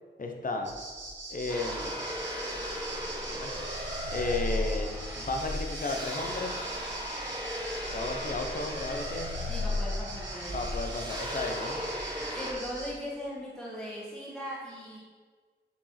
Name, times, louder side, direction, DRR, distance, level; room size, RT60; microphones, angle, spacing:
voice 1, 0.2-0.7 1.3-2.1 3.3-3.7 4.1-4.9 5.2-6.6 7.9-9.3 10.5-11.8, left 2 dB, 45° left, 3 dB, 1.1 m, -34 dB
sound 1, 0.6-12.9, right 2 dB, 80° right, 1.9 m, -42 dB
sound 2, 1.5-12.5, left 1 dB, 20° right, 1.7 m, -35 dB
voice 2, 9.5-10.6 12.3-15.0, equal, ahead, -8 dB, 2.0 m, -39 dB
7.3 x 5.3 x 5.9 m, 1.5 s
wide cardioid pair, 145°, 19 cm